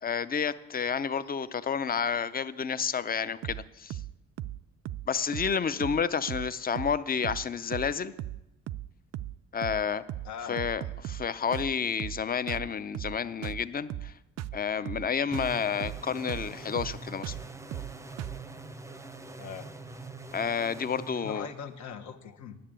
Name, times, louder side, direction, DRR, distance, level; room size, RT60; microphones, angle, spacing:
voice 1, 0.0-4.0 5.1-8.1 9.5-10.0 10.5-14.1 14.5-17.4 20.3-21.5, left 6 dB, 30° left, 14 dB, 0.6 m, -30 dB
sound 1, 3.4-3.6 3.9-4.1 4.4-4.6 4.9-5.1 5.3-5.5 5.8-6.0 6.3-6.5 6.8-7.0 7.2-7.5 7.7-7.9 8.2-8.4 8.7-8.9 9.1-9.4 9.6-9.8 10.1-10.3 10.6-11.3 11.5-11.7 12.0-12.2 12.5-12.7 12.9-13.2 13.4-13.6 13.9-14.1 14.4-14.6 14.9-15.1 15.3-15.5 15.8-16.0 16.3-16.5 16.8-17.0 17.2-17.4 17.7-17.9 18.2-18.4, right 13 dB, 60° right, 0.4 m, -37 dB
voice 2, 10.2-10.9 19.4-19.7 21.1-22.6, left 7 dB, 70° left, 4 dB, 1.4 m, -42 dB
sound 2, 15.3-21.8, right 3 dB, 10° right, 0.6 m, -44 dB
10.5 x 6.7 x 8.8 m, 0.94 s
cardioid pair, 90°, 30 cm